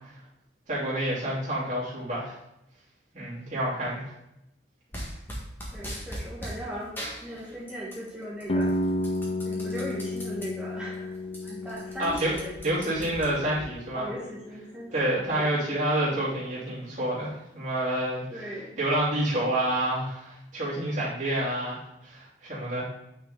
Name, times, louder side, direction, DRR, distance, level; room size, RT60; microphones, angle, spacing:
voice 1, 0.7-2.4 3.1-4.1 12.0-12.3 12.6-14.0 14.9-18.5 18.8-21.8 22.0-22.8, right 1 dB, 40° right, -9 dB, 2.9 m, -28 dB
sound 1, 4.9-6.6 7.0-8.1 8.4-10.5 10.9-11.0 11.2-13.7, equal, 10° left, 1.5 m, -39 dB
voice 2, 5.7-6.9 7.2-8.7 9.4-11.1 11.4-12.5 13.9-15.6 18.3-18.8, equal, 5° right, -6 dB, 1.2 m, -38 dB
sound 2, 8.5-14.3, left 1 dB, 30° left, 0.3 m, -32 dB
8.8 x 4.8 x 3.8 m, 0.84 s
head